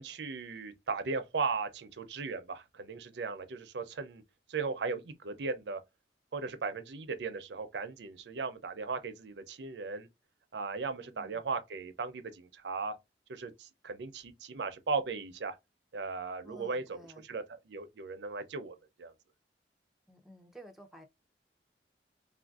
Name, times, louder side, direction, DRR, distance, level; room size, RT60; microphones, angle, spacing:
voice 1, 0.0-4.2 4.5-5.8 6.3-10.1 10.5-12.9 13.3-15.6 15.9-19.1, right 4 dB, 75° right, 0.5 m, -37 dB
voice 2, 11.0-11.4 16.4-17.2 20.1-21.0, equal, ahead, 0.4 m, -53 dB
3.4 x 2.5 x 2.3 m
head